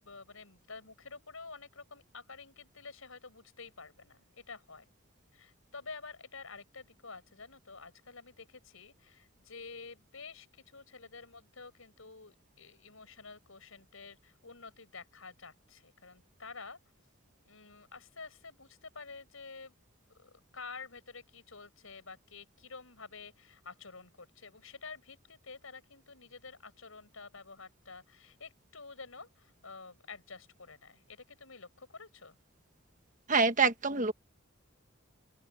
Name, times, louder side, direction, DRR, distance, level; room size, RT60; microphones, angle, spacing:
voice 1, 0.0-4.8 5.3-16.8 17.4-19.8 20.1-32.4, left 4 dB, 80° left, 5.5 m, -49 dB
voice 2, 33.3-34.1, right 4 dB, 40° right, 1.3 m, -26 dB
open air
head